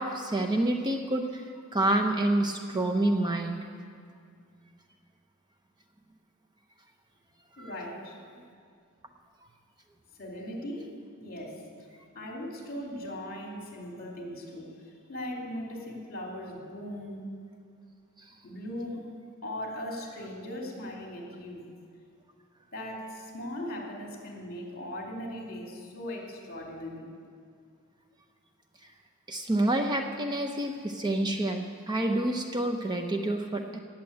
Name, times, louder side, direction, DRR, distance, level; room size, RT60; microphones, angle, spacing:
voice 1, 0.0-1.4 1.7-3.6 7.6-7.7 29.3-33.8, right 1 dB, 20° right, 4 dB, 0.6 m, -28 dB
voice 2, 7.6-8.2 10.2-10.9 11.2-11.6 12.1-17.3 18.4-19.0 19.4-21.6 22.7-27.1, left 1 dB, 40° left, -1 dB, 3.0 m, -39 dB
17.5 x 7.5 x 8.5 m, 2.3 s
head